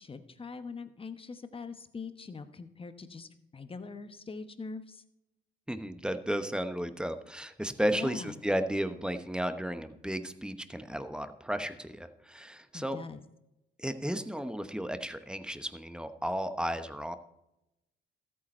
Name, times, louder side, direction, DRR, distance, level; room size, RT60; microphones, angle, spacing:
voice 1, 0.0-5.0 7.9-8.4 12.7-13.2, left 4 dB, 25° left, 10 dB, 1.1 m, -42 dB
voice 2, 5.7-13.0 13.8-17.1, equal, 5° right, 10 dB, 1.0 m, -33 dB
13.5 x 8.7 x 4.3 m, 0.88 s
cardioid pair, 90°, 20 cm